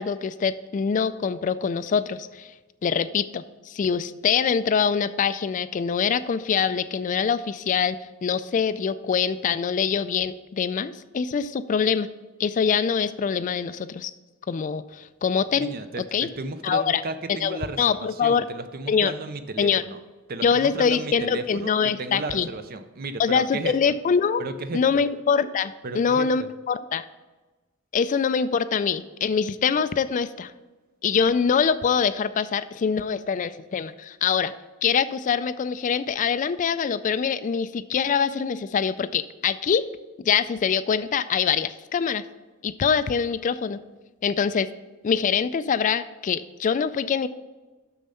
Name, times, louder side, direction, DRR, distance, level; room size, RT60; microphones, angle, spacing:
voice 1, 0.0-2.5 2.8-12.1 12.4-14.1 14.5-15.7 16.0-16.3 16.6-17.0 17.4-18.4 18.9-19.1 19.6-19.8 20.4-22.5 23.2-24.4 24.7-27.0 27.9-30.5 31.0-34.5 34.8-39.8 40.2-42.2 42.6-43.8 44.2-44.7 45.0-47.3, left 6 dB, 40° left, 14 dB, 0.3 m, -24 dB
voice 2, 15.5-20.0 20.3-23.9 24.4-25.0 25.8-26.5, right 2 dB, 50° right, 10 dB, 0.6 m, -34 dB
6.9 x 6.4 x 5.6 m, 1.2 s
head